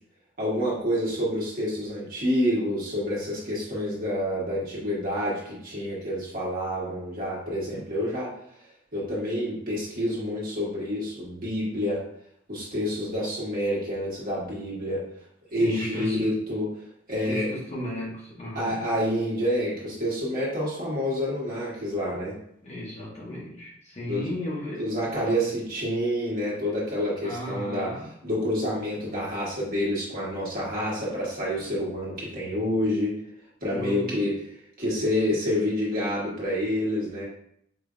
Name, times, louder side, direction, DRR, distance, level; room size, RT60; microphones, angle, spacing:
voice 1, 0.4-8.3 8.9-12.0 12.5-15.0 15.5-16.7 17.1-17.5 18.5-22.3 24.0-24.3 24.8-27.9 28.2-33.1 33.6-34.4 34.8-37.3, equal, 50° right, -6 dB, 1.3 m, -28 dB
voice 2, 15.6-16.3 17.2-18.8 22.6-24.9 25.2-25.4 27.2-28.1 33.7-34.3, left 1 dB, 35° left, -5 dB, 1.0 m, -34 dB
4.9 x 2.5 x 2.4 m, 0.71 s
head